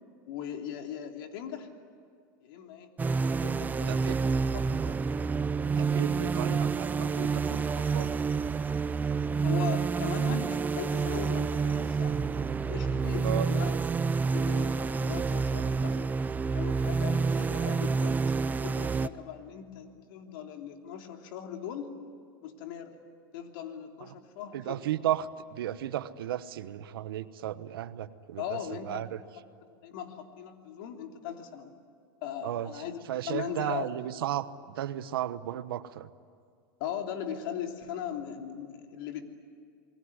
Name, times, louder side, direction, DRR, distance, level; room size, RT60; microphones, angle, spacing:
voice 1, 0.2-1.7 2.4-2.9 3.4-4.4 4.8-5.0 9.4-12.1 12.6-13.8 14.3-16.1 16.5-18.3 18.6-21.9 22.4-22.9 23.3-24.8 28.4-29.0 29.6-31.7 32.2-33.0 33.3-33.9 36.8-39.2, left 9 dB, 70° left, 4 dB, 3.1 m, -39 dB
sound 1, 3.0-19.1, right 5 dB, 15° right, 0.6 m, -28 dB
voice 2, 3.9-4.2 5.8-8.1 13.2-13.5 24.0-24.1 24.5-28.6 28.8-29.2 32.4-36.1, right 12 dB, 90° right, 13 dB, 1.1 m, -34 dB
29.0 x 21.0 x 9.8 m, 2.3 s
supercardioid pair, 135°, 12 cm